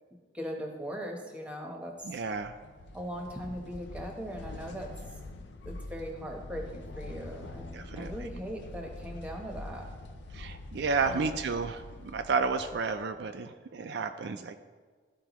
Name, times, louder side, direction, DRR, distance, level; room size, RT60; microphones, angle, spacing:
voice 1, 0.3-1.9 2.9-4.9 5.6-9.8 11.1-11.5, equal, 5° right, 0 dB, 0.9 m, -39 dB
voice 2, 2.0-2.5 7.7-8.1 10.3-14.6, right 4 dB, 65° right, 7 dB, 0.4 m, -31 dB
sound 1, 2.2-13.2, left 2 dB, 70° left, 0.5 m, -45 dB
13.0 x 4.5 x 3.0 m, 1.5 s
head